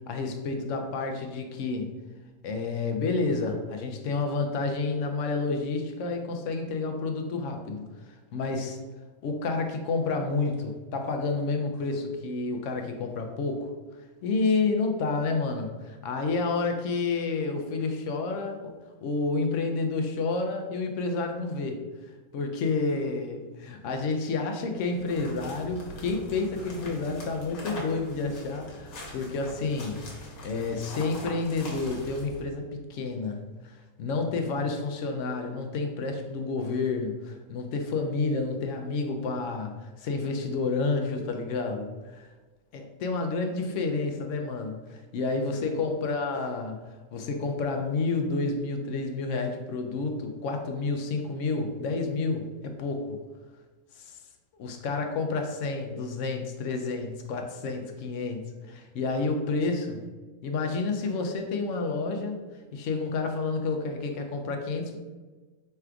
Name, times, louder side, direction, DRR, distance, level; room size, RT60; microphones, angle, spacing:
voice 1, 0.1-1.9 2.4-7.9 8.3-8.8 9.2-13.7 14.2-18.7 19.0-21.8 22.3-33.4 34.0-42.3 42.7-46.8 47.1-53.2 54.0-54.1 54.6-60.0 60.4-62.4 62.7-65.0, left 3 dB, 70° left, 4 dB, 0.9 m, -30 dB
sound 1, 24.7-32.4, left 1 dB, 85° left, 1.4 m, -42 dB
3.3 x 2.4 x 4.4 m, 1.3 s
omnidirectional pair, 1.5 m